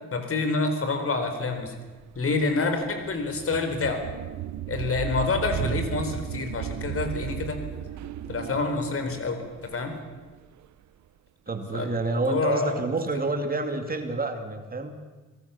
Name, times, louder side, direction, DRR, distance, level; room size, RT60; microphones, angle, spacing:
voice 1, 0.1-1.7 2.1-4.0 4.7-7.6 8.3-9.9 11.7-12.8, left 3 dB, 45° left, 7 dB, 4.5 m, -27 dB
sound 1, 1.7-10.7, right 11 dB, 70° right, 1.1 m, -35 dB
voice 2, 11.5-14.9, right 3 dB, 30° right, 6 dB, 2.6 m, -28 dB
25.5 x 18.0 x 7.1 m, 1.3 s
cardioid pair, 90°, 30 cm